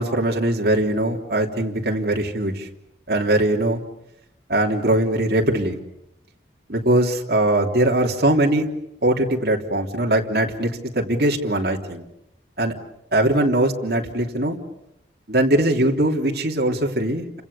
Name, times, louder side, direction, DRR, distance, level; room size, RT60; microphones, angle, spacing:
voice 1, 0.0-2.7 3.1-3.8 4.5-5.8 6.7-8.7 9.0-12.0 12.6-12.7 13.1-14.6 15.3-17.4, right 1 dB, 60° right, 0 dB, 3.2 m, -21 dB
29.5 x 26.5 x 7.0 m, 0.84 s
head